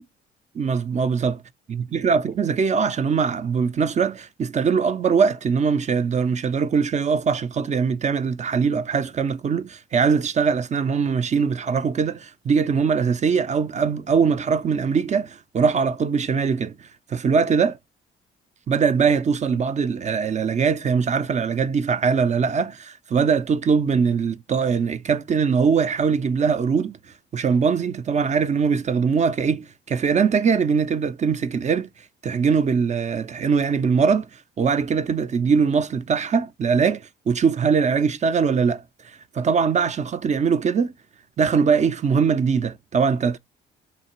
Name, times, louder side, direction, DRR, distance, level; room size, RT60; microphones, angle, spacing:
voice 1, 0.5-1.3 1.7-16.7 17.1-17.8 18.7-27.0 27.3-31.9 32.2-34.3 34.6-38.8 39.3-40.9 41.4-43.4, right 6 dB, 35° right, 0.5 m, -21 dB
3.3 x 2.9 x 4.3 m
cardioid pair, 90°, 20 cm